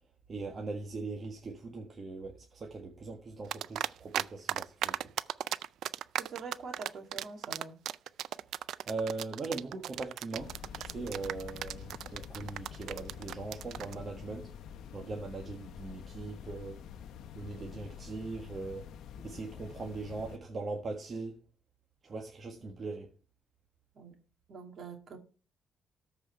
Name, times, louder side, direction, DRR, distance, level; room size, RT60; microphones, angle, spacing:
voice 1, 0.3-5.1 8.9-14.5 14.9-16.8 17.3-18.9 19.2-21.4 22.0-23.1, right 3 dB, 40° right, 1.5 m, -40 dB
sound 1, 3.5-4.2 4.5-13.9, right 11 dB, 75° right, 0.3 m, -35 dB
voice 2, 6.2-7.8 22.6-22.7 23.9-24.1 24.5-25.2, right 5 dB, 60° right, 2.4 m, -44 dB
sound 2, 10.4-20.4, left 8 dB, 80° left, 0.7 m, -47 dB
13.5 x 4.9 x 4.5 m
cardioid pair, 90°, 0 cm